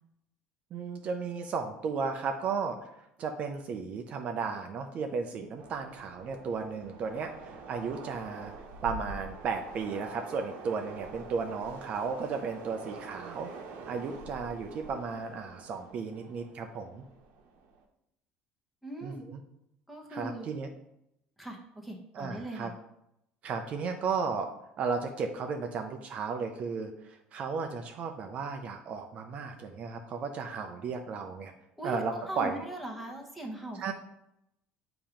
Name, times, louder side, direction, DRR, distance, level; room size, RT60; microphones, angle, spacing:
voice 1, 0.7-2.8 3.2-8.5 8.8-13.5 13.9-17.0 19.0-19.4 20.1-20.7 22.1-22.7 23.4-24.5 24.8-31.5 31.8-32.6 33.8-33.9, right 5 dB, 40° right, 5 dB, 0.5 m, -34 dB
Train, 5.6-17.8, right 3 dB, 75° right, 0.9 m, -46 dB
voice 2, 18.8-19.2 19.9-20.5 21.4-22.7 31.8-33.9, right 1 dB, ahead, -1 dB, 1.0 m, -40 dB
7.2 x 2.9 x 5.0 m, 0.82 s
cardioid pair, 150°, 3 cm